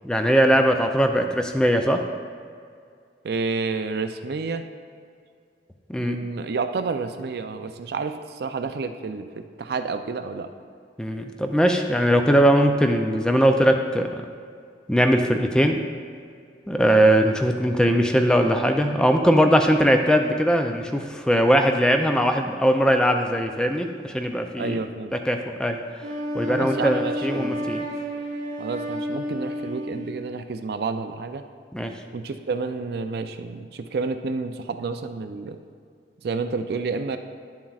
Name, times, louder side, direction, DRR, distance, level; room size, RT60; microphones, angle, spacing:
voice 1, 0.0-2.0 5.9-6.2 11.0-14.2 14.9-15.8 16.7-24.8 25.3-25.8 26.3-27.8 31.7-31.9, equal, 5° left, 5 dB, 0.3 m, -20 dB
voice 2, 3.2-4.6 6.0-10.5 24.6-25.1 26.5-27.8 28.6-31.4 32.1-35.6 36.2-37.2, right 4 dB, 60° right, 8 dB, 0.4 m, -30 dB
Wind instrument woodwind instrument, 26.0-30.3, equal, 45° right, 0.8 m, -30 dB
10.5 x 7.3 x 2.4 m, 2.2 s
head